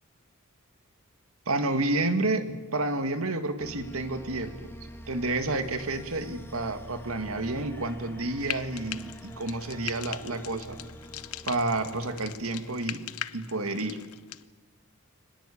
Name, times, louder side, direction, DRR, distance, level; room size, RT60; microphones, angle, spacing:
voice 1, 1.5-4.7 5.1-10.8 11.4-13.1 13.3-14.0, right 2 dB, 80° right, 8 dB, 2.1 m, -30 dB
sound 1, 3.6-13.0, equal, 10° left, 2.2 m, -46 dB
Frying (food), 8.4-14.4, left 11 dB, 85° left, 0.8 m, -40 dB
23.5 x 20.5 x 8.6 m, 1.3 s
head